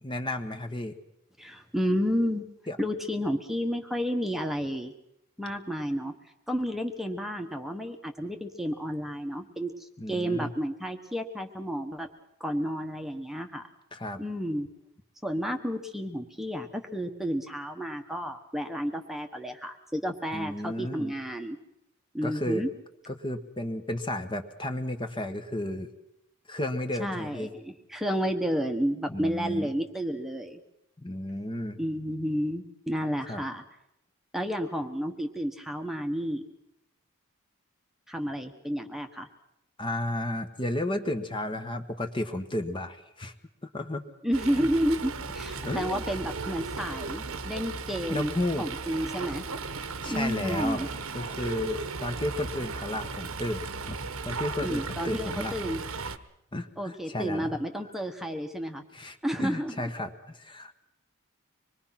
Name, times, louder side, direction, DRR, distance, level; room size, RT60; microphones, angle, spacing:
voice 1, 0.0-0.9 2.7-2.8 10.0-10.5 13.9-14.2 20.3-21.1 22.2-22.6 23.1-25.9 26.5-27.5 29.1-29.7 31.0-31.8 33.3-33.4 39.8-43.3 43.6-44.0 44.6-44.7 45.6-46.0 48.1-48.7 50.0-50.9 51.1-54.0 54.2-55.5 56.5-57.5 58.9-60.7, left 1 dB, 25° left, 7 dB, 1.3 m, -33 dB
voice 2, 1.4-2.5 2.8-4.9 5.4-6.1 6.5-12.1 12.4-13.6 14.2-14.7 15.2-21.6 22.1-22.7 27.0-30.6 31.8-33.6 34.3-36.4 38.1-39.3 44.2-49.4 50.1-50.9 54.6-55.8 56.8-58.8 59.2-59.9, equal, ahead, 4 dB, 1.2 m, -31 dB
Fowl, 44.3-56.2, right 4 dB, 80° right, 1.2 m, -36 dB
25.0 x 21.5 x 5.9 m, 0.81 s
head